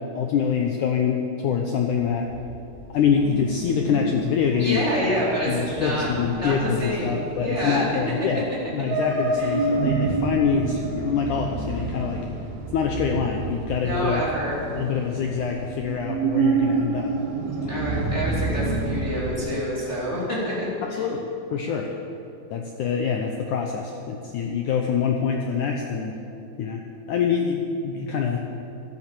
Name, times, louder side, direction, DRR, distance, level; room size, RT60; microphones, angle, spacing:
voice 1, 0.2-2.3 2.9-4.8 5.4-8.4 8.7-12.3 12.7-14.2 14.7-17.1 17.6-17.8 21.0-21.9 22.5-26.2 26.6-26.8 27.1-28.4, left 6 dB, 75° left, 2 dB, 1.8 m, -25 dB
sound 1, 2.0-19.4, right 3 dB, 75° right, 3.3 m, -29 dB
voice 2, 4.5-6.1 6.4-7.8 8.9-9.0 9.4-9.6 13.8-14.6 17.7-21.1, equal, 20° left, -7 dB, 2.9 m, -27 dB
12.5 x 12.0 x 7.6 m, 2.8 s
omnidirectional pair, 4.5 m